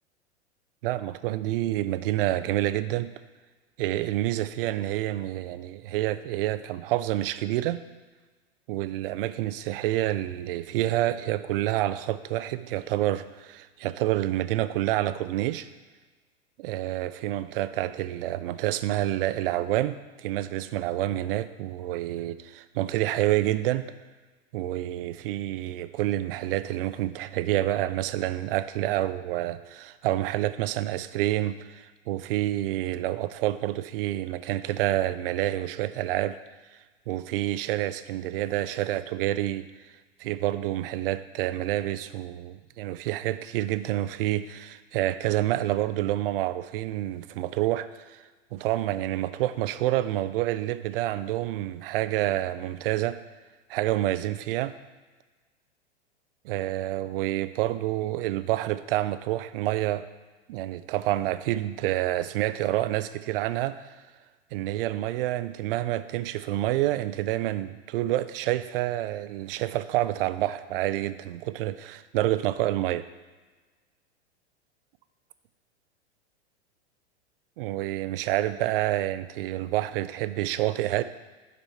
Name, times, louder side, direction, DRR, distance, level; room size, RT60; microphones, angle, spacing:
voice 1, 0.8-3.1 3.8-7.8 8.7-15.7 16.6-23.9 24.5-36.4 37.1-39.7 40.2-48.2 48.5-53.2 53.7-54.7 56.4-60.1 60.5-63.9 64.5-73.1 77.6-81.0, right 14 dB, 55° right, 13 dB, 0.5 m, -28 dB
7.1 x 5.3 x 4.5 m, 1.3 s
hypercardioid pair, 100°, 34 cm